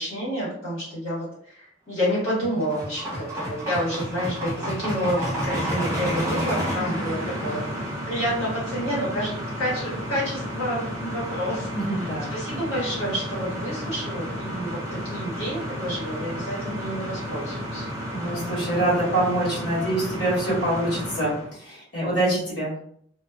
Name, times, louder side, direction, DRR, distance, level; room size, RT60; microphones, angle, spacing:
voice 1, 0.0-7.7 8.0-11.7 12.0-17.9, equal, 90° left, -9 dB, 1.3 m, -29 dB
sound 1, 2.1-21.5, equal, 15° right, 0.8 m, -31 dB
voice 2, 11.7-12.3 18.1-22.7, right 1 dB, 65° left, -8 dB, 1.5 m, -25 dB
2.5 x 2.3 x 2.3 m, 0.63 s
head